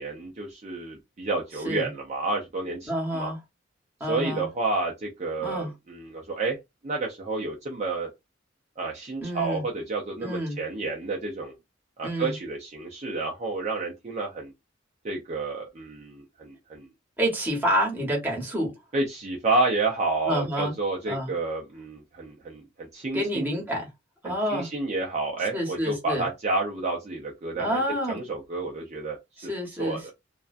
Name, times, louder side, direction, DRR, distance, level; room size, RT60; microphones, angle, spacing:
voice 1, 0.0-3.3 4.0-6.6 6.8-8.1 8.8-11.5 12.0-14.5 15.0-16.9 18.9-23.5 24.2-27.8 28.1-29.2 29.8-30.1, right 3 dB, 35° right, 0.5 m, -30 dB
voice 2, 2.9-3.4 4.0-4.5 5.4-5.7 9.2-9.6 10.2-10.6 12.0-12.3 17.2-18.7 20.3-20.7 21.1-21.3 23.1-23.9 24.2-24.7 25.5-26.2 27.5-28.2 29.5-30.1, equal, 10° right, 1.0 m, -28 dB
2.4 x 2.2 x 2.4 m
head